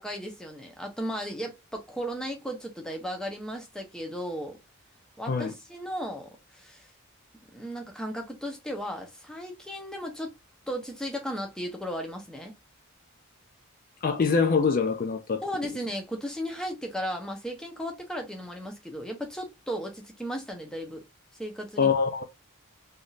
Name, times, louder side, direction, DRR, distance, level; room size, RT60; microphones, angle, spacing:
voice 1, 0.0-4.6 5.2-6.9 7.5-10.3 10.7-12.5 15.4-21.0 21.4-21.9, equal, 5° left, 0.6 m, -35 dB
voice 2, 14.0-15.4 21.8-22.2, left 5 dB, 40° left, 0.4 m, -24 dB
3.4 x 2.7 x 2.3 m
head